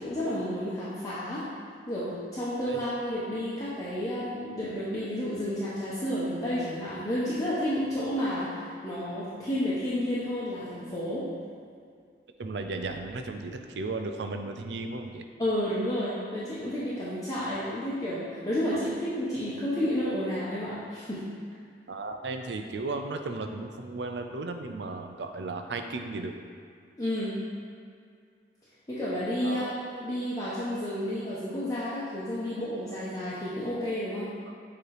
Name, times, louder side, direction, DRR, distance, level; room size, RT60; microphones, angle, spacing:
voice 1, 0.0-1.5 1.9-8.5 8.8-11.3 15.4-21.2 27.0-27.4 28.9-34.3, equal, 20° left, -11 dB, 1.0 m, -31 dB
voice 2, 12.4-15.3 21.9-26.3 29.4-29.8, right 3 dB, 70° right, 5 dB, 0.5 m, -35 dB
7.4 x 3.1 x 4.8 m, 2.2 s
head